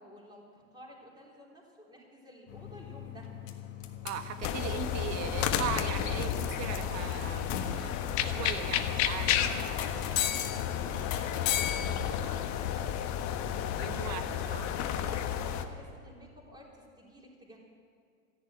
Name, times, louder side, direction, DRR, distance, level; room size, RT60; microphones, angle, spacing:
voice 1, 0.0-3.3 9.3-11.8 12.2-13.1 15.0-17.6, equal, 10° right, -3 dB, 3.8 m, -52 dB
sound 1, 2.5-14.5, left 10 dB, 65° left, 1.7 m, -39 dB
voice 2, 4.0-9.5 10.6-10.7 13.8-14.7, right 9 dB, 40° right, 9 dB, 1.3 m, -39 dB
sound 2, 4.4-15.6, left 9 dB, 45° left, 1.1 m, -32 dB
14.0 x 11.0 x 8.9 m, 2.3 s
hypercardioid pair, 120°, 40 cm